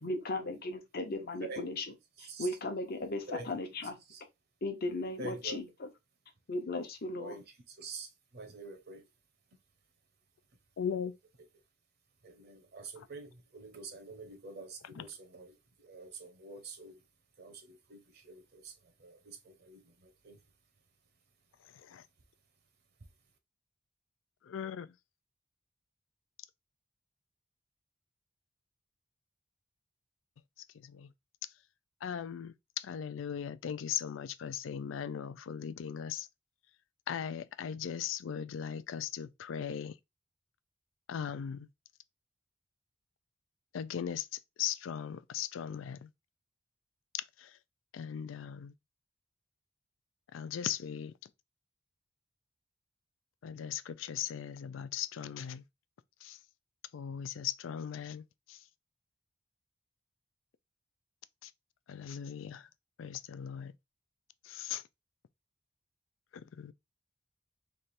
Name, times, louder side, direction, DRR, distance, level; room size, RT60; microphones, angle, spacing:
voice 1, 0.0-1.9 2.2-4.0 4.6-5.9 6.5-7.4, left 2 dB, 55° left, 0.8 m, -36 dB
voice 2, 5.2-5.6 7.2-7.4 7.8-9.1 12.2-17.0 17.4-20.4, right 3 dB, 55° right, 0.8 m, -47 dB
voice 3, 10.8-11.1 15.0-15.1 21.9-22.0 24.5-24.9 30.9-31.1 32.0-36.3 37.1-39.9 41.1-41.7 43.7-44.3 44.6-46.0 47.1-47.2 47.9-48.7 50.3-51.1 53.4-55.6 56.2-56.4 56.9-58.2 61.4-61.5 61.9-62.6 63.0-63.7 64.5-64.8 66.6-66.7, left 8 dB, 90° left, 0.4 m, -38 dB
3.3 x 2.5 x 4.1 m
head